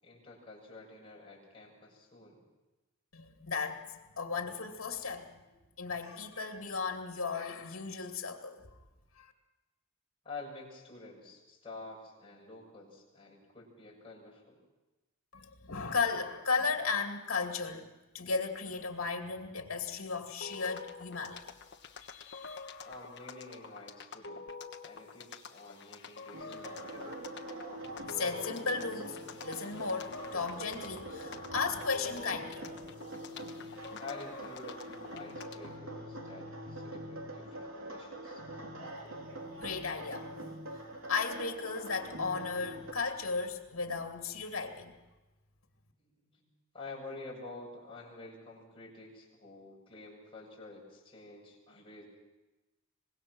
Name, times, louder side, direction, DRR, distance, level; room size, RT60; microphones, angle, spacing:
voice 1, 0.0-2.4 10.2-14.6 22.8-24.4 24.8-27.2 34.0-38.5 46.0-46.5 46.7-52.1, left 3 dB, 25° left, 7.1 m, -49 dB
voice 2, 3.1-8.6 9.2-9.3 15.3-17.9 18.1-21.5 22.0-22.6 28.0-32.8 39.6-40.3 41.0-45.0, left 4 dB, 75° left, 2.4 m, -35 dB
sound 1, 20.4-35.8, left 4 dB, 55° left, 1.4 m, -48 dB
sound 2, 26.3-42.9, right 1 dB, 70° right, 3.7 m, -44 dB
24.5 x 21.0 x 6.3 m
head